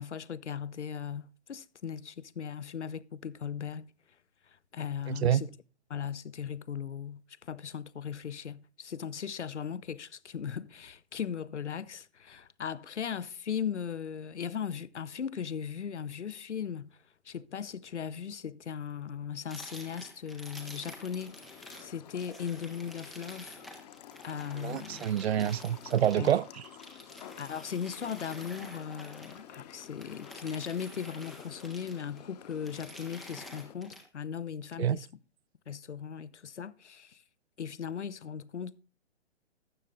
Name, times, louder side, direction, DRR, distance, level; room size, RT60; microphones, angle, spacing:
voice 1, 0.0-3.9 4.7-5.5 5.9-17.0 17.3-23.6 24.2-25.1 26.1-26.3 27.4-35.1 35.7-37.2 37.6-38.8, left 7 dB, 80° left, 0.7 m, -38 dB
voice 2, 5.1-5.4 24.6-26.7 34.8-35.0, right 10 dB, 65° right, 0.5 m, -27 dB
sound 1, 19.5-21.9 22.2-29.5 29.8-32.2 32.5-34.0, equal, ahead, 0.4 m, -49 dB
sound 2, 20.6-33.7, left 10 dB, 35° left, 1.0 m, -51 dB
12.5 x 8.2 x 3.7 m
figure-of-eight pair, 125°, 34 cm